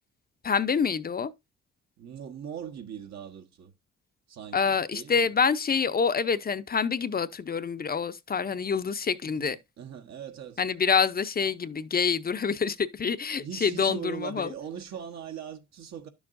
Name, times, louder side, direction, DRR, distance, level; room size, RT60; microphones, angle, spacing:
voice 1, 0.4-1.3 4.5-9.6 10.6-14.5, left 6 dB, 30° left, 0.7 m, -26 dB
voice 2, 2.0-3.7 4.3-5.3 9.2-10.6 13.4-16.1, right 8 dB, 65° right, 1.3 m, -40 dB
10.5 x 7.0 x 2.6 m
cardioid pair, 90°, 30 cm